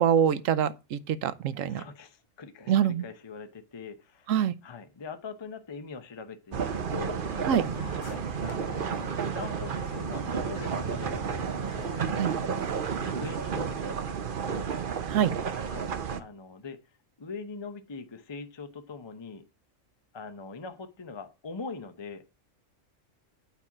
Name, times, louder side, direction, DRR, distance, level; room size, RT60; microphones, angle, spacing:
voice 1, 0.0-1.8 2.7-3.0 4.3-4.5 7.5-7.6 12.2-12.3 15.1-15.3, right 9 dB, 80° right, 1.0 m, -25 dB
voice 2, 1.7-4.3 4.6-7.2 8.0-12.0 13.1-14.7 15.6-15.9 16.2-16.8 17.2-19.4 20.1-22.2, left 4 dB, 25° left, 0.7 m, -42 dB
sound 1, 6.5-16.2, right 7 dB, 50° right, 0.8 m, -32 dB
sound 2, 7.2-13.3, left 11 dB, 90° left, 1.1 m, -46 dB
8.8 x 4.4 x 6.0 m
omnidirectional pair, 1.4 m